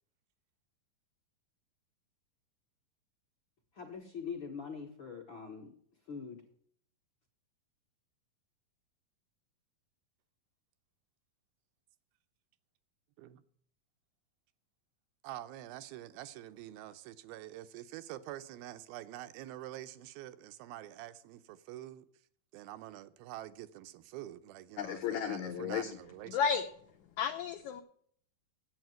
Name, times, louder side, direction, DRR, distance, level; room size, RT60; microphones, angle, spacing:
voice 1, 3.7-5.7 6.1-6.4, left 6 dB, 60° left, 1.3 m, -43 dB
voice 2, 15.2-22.1 22.5-26.4, right 14 dB, 85° right, 2.6 m, -46 dB
voice 3, 24.8-25.9 26.3-26.6 27.2-27.8, left 7 dB, 80° left, 1.7 m, -33 dB
9.3 x 8.0 x 9.2 m
omnidirectional pair, 4.2 m